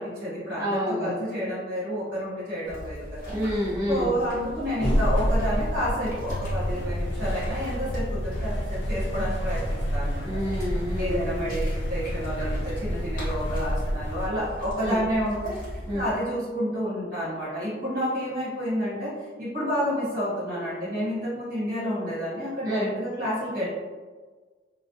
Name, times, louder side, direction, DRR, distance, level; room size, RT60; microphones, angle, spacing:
voice 1, 0.0-3.4 3.9-10.3 11.0-19.1 19.4-23.7, equal, 55° right, -9 dB, 1.3 m, -30 dB
voice 2, 0.6-1.1 3.3-4.2 10.2-11.2 14.8-15.0 15.9-16.0 22.7-22.9, equal, 20° right, -10 dB, 0.4 m, -28 dB
sound 1, 2.7-16.1, equal, 50° left, 0.9 m, -39 dB
sound 2, 4.8-14.3, equal, 80° left, 0.5 m, -28 dB
2.3 x 2.2 x 2.5 m, 1.4 s
head